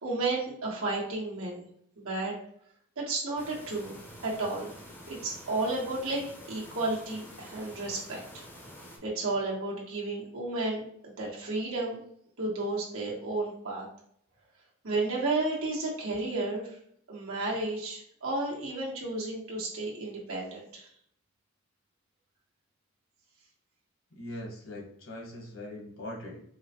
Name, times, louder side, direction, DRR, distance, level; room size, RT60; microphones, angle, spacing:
voice 1, 0.0-1.6 2.0-2.3 3.0-3.9 4.2-4.7 5.1-8.4 9.0-12.0 12.4-13.8 14.8-16.7 17.1-20.9, right 2 dB, 75° right, -4 dB, 1.3 m, -32 dB
sound 1, 3.4-9.0, equal, 10° left, 0.6 m, -48 dB
voice 2, 24.1-26.4, left 1 dB, 65° left, -1 dB, 1.2 m, -41 dB
4.8 x 2.1 x 2.9 m, 0.65 s
head